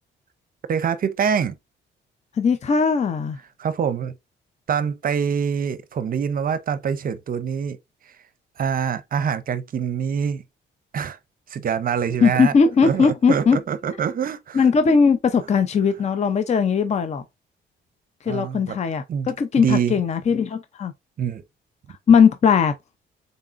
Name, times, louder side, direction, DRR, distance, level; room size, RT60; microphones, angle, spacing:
voice 1, 0.7-1.6 3.6-4.2 4.7-7.8 8.0-8.1 8.6-10.4 10.9-11.2 11.5-12.5 12.8-14.7 18.3-18.8 19.1-20.0 21.2-21.4, right 7 dB, 45° right, 0.6 m, -25 dB
voice 2, 2.3-3.4 12.2-13.6 14.5-17.2 18.2-20.9 21.9-22.7, left 5 dB, 35° left, 0.6 m, -19 dB
3.9 x 3.6 x 2.5 m
cardioid pair, 90°, 20 cm